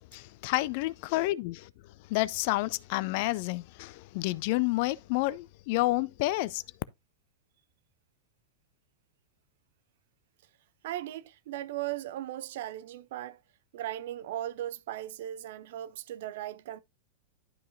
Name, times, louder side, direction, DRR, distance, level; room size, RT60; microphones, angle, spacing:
voice 1, 0.1-1.7 2.1-6.6, left 19 dB, 50° left, 0.4 m, -29 dB
voice 2, 10.8-13.4 13.7-16.8, right 13 dB, 55° right, 0.6 m, -37 dB
11.5 x 5.5 x 2.6 m
figure-of-eight pair, 90°, 0 cm